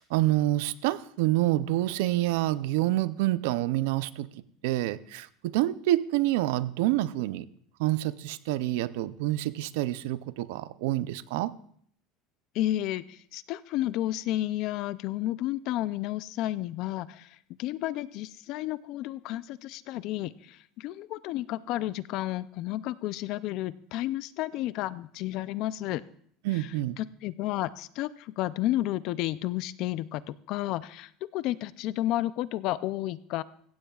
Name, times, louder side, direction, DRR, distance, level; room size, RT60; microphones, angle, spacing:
voice 1, 0.0-4.3 4.6-7.5 7.8-11.5 26.4-27.0, right 16 dB, 75° right, 16 dB, 0.5 m, -27 dB
voice 2, 12.5-17.3 17.6-26.0 26.5-33.4, left 15 dB, 45° left, 17 dB, 0.4 m, -32 dB
16.0 x 15.0 x 2.4 m, 0.63 s
cardioid pair, 170°, 0 cm